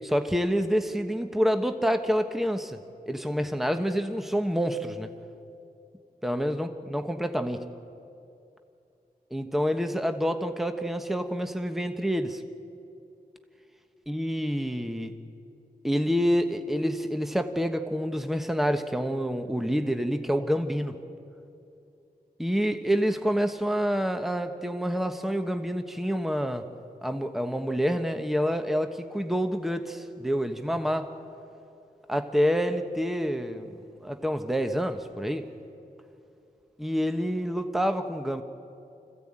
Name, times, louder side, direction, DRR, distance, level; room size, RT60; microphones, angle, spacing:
voice 1, 0.0-2.8 3.1-5.1 6.2-7.6 9.3-12.4 14.1-15.1 15.8-20.9 22.4-26.6 27.0-31.1 32.1-33.7 34.0-35.4 36.8-38.4, equal, ahead, 6 dB, 1.2 m, -27 dB
25.5 x 15.0 x 8.9 m, 2.7 s
wide cardioid pair, 70°, 16 cm